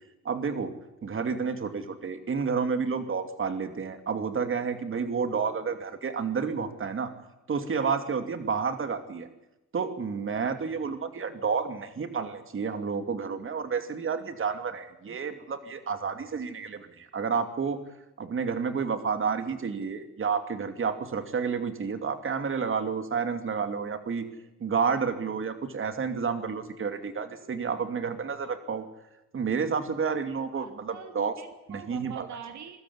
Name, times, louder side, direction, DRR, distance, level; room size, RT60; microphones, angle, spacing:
voice 1, 0.2-0.7 1.0-7.1 7.5-9.3 9.7-17.8 18.2-24.3 24.6-28.9 29.3-31.3 31.7-32.3, right 5 dB, 45° right, 8 dB, 2.8 m, -30 dB
voice 2, 30.5-32.8, right 8 dB, 70° right, 7 dB, 2.4 m, -44 dB
23.0 x 13.5 x 9.8 m, 0.94 s
cardioid pair, 90°, 30 cm